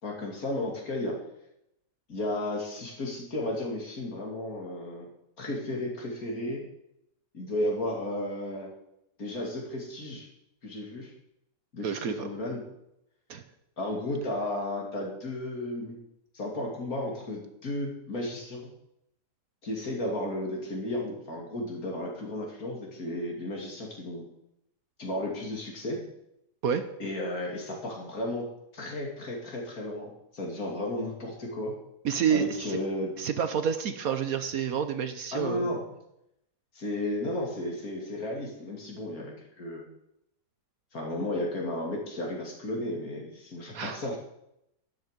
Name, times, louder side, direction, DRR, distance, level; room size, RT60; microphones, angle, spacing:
voice 1, 0.0-1.2 2.1-5.1 5.4-6.6 7.3-8.7 9.2-10.3 10.6-11.1 11.7-12.6 13.8-16.0 16.3-18.6 19.6-24.2 25.0-26.0 27.0-28.5 28.7-31.7 32.3-33.1 35.3-35.8 36.7-39.8 40.9-44.2, left 1 dB, 55° left, 0 dB, 3.1 m, -33 dB
voice 2, 11.8-12.3 13.3-13.4 26.6-26.9 32.0-32.6 33.2-35.7 43.7-44.0, right 7 dB, 65° right, 10 dB, 1.2 m, -29 dB
12.0 x 10.5 x 5.2 m, 0.81 s
omnidirectional pair, 1.8 m